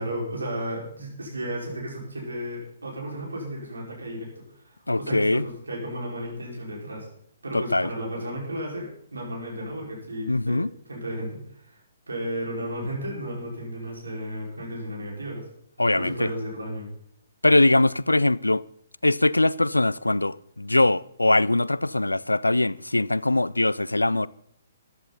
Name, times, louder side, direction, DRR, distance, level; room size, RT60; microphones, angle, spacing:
voice 1, 0.0-7.1 7.4-10.6 10.9-11.7 12.1-15.4 15.9-16.9, equal, 70° right, 5.2 m, -34 dB
voice 2, 4.9-5.4 7.5-7.9 10.3-10.7 15.8-16.3 17.4-18.6 19.0-24.3, left 2 dB, 80° left, 0.4 m, -22 dB
14.0 x 11.0 x 4.1 m
figure-of-eight pair, 125°, 0 cm